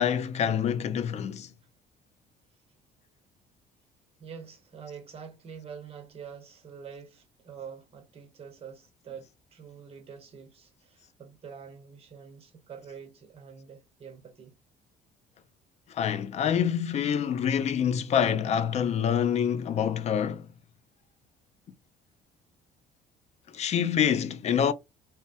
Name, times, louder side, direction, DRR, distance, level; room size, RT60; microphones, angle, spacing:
voice 1, 0.0-1.5 15.9-20.5 23.5-24.7, left 8 dB, 40° left, 0.4 m, -26 dB
voice 2, 4.2-14.6 23.5-23.6, right 7 dB, 35° right, 0.9 m, -46 dB
2.1 x 2.1 x 2.7 m
cardioid pair, 110°, 17 cm